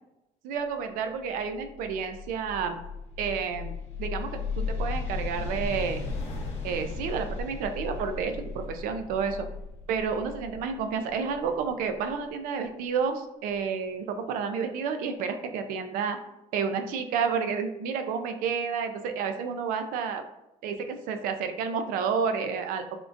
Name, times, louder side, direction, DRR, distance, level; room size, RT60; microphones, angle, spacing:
voice 1, 0.4-2.8 3.2-3.7 4.0-6.0 6.6-9.5 9.9-16.2 16.5-20.2 20.6-23.0, right 6 dB, 85° right, 7 dB, 0.4 m, -30 dB
sound 1, 1.3-12.1, left 4 dB, 50° left, 0.8 m, -36 dB
3.5 x 2.4 x 2.5 m, 0.92 s
cardioid pair, 175°, 14 cm